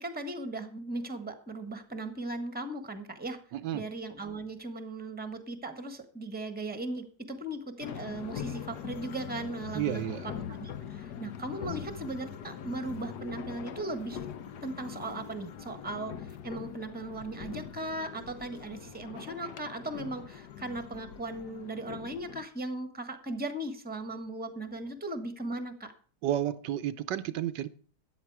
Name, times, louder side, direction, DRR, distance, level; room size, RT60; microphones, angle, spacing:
voice 1, 0.0-3.4 3.7-10.1 10.6-14.2 14.6-25.9, right 2 dB, 5° right, 1.2 m, -37 dB
voice 2, 3.5-3.9 9.7-10.3 26.2-27.7, right 12 dB, 85° right, 1.4 m, -31 dB
sound 1, 7.8-22.5, left 8 dB, 70° left, 1.4 m, -42 dB
13.5 x 9.4 x 4.7 m
omnidirectional pair, 1.9 m